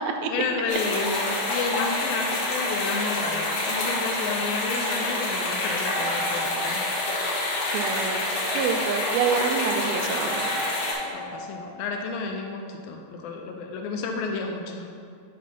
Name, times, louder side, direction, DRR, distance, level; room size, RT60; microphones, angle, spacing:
voice 1, 0.3-6.9 11.1-14.9, left 4 dB, 80° left, 3 dB, 2.2 m, -31 dB
sound 1, 0.7-10.9, left 2 dB, 65° left, 1.4 m, -27 dB
sound 2, 3.2-4.9 5.9-8.4 10.3-12.4, right 1 dB, 65° right, 1.3 m, -39 dB
voice 2, 7.7-8.2 8.5-10.5, right 6 dB, 85° right, 4 dB, 2.3 m, -27 dB
9.2 x 3.1 x 5.5 m, 2.3 s
omnidirectional pair, 4.3 m